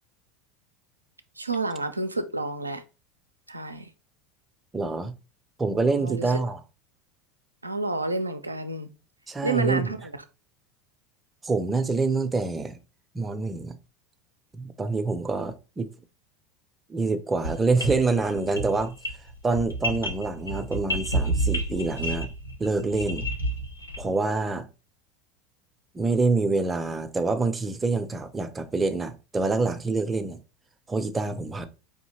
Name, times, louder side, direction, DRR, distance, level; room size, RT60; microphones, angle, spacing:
voice 1, 1.4-2.8 3.5-3.9 6.0-6.4 7.6-8.9 9.4-10.2, right 3 dB, 85° right, 0.4 m, -30 dB
voice 2, 4.7-5.1 5.6-6.6 9.3-9.9 11.4-12.8 13.1-13.8 14.6-15.9 16.9-18.9 19.4-22.3 22.6-23.3 24.0-24.7 25.9-30.4 30.9-31.7, right 3 dB, 20° right, 0.5 m, -26 dB
sound 1, 17.4-24.2, right 1 dB, 90° left, 0.7 m, -30 dB
4.6 x 2.8 x 2.8 m
figure-of-eight pair, 75°, 0 cm